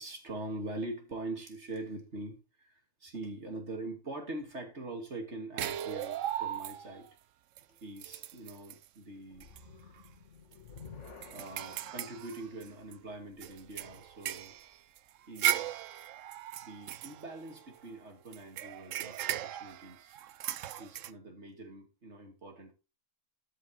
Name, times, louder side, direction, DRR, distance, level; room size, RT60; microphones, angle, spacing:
voice 1, 0.0-7.2 7.8-9.5 11.3-14.6 15.3-15.8 16.6-20.2 20.8-22.7, right 2 dB, 50° right, 3 dB, 2.9 m, -43 dB
sound 1, 5.6-7.1 7.6-7.7 8.0-8.9 9.4-9.6 10.0-10.1 10.5-12.9 13.4-17.9 18.3-21.1, right 12 dB, 65° right, 0.9 m, -37 dB
sound 2, 9.3-14.6, left 4 dB, 55° left, 2.0 m, -53 dB
12.5 x 5.5 x 4.7 m, 0.30 s
omnidirectional pair, 1.6 m